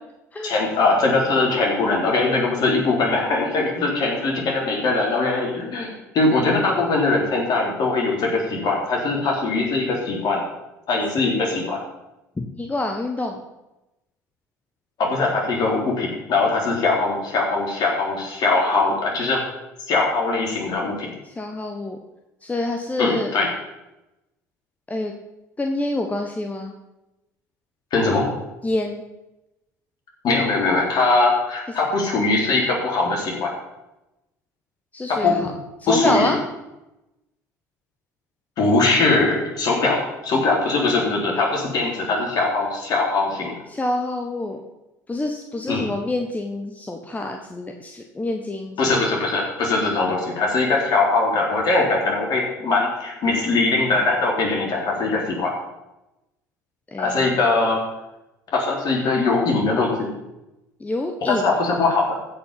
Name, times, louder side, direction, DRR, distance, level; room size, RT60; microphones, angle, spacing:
voice 1, 0.4-10.4 10.9-11.8 15.0-19.4 19.9-21.1 23.0-23.5 27.9-28.3 30.2-33.5 35.1-35.5 35.9-36.3 38.6-43.5 45.7-45.9 48.8-55.5 57.0-57.8 58.5-60.1 61.3-62.2, left 3 dB, 50° left, -1 dB, 4.0 m, -21 dB
voice 2, 12.4-13.4 21.2-22.0 22.4-23.3 24.9-25.1 25.6-26.7 28.6-29.0 34.9-35.5 35.8-36.4 43.7-44.6 45.1-49.0 56.9-57.3 60.8-61.5, left 2 dB, 15° left, 4 dB, 1.3 m, -27 dB
15.0 x 5.7 x 5.8 m, 0.96 s
hypercardioid pair, 60°, 9 cm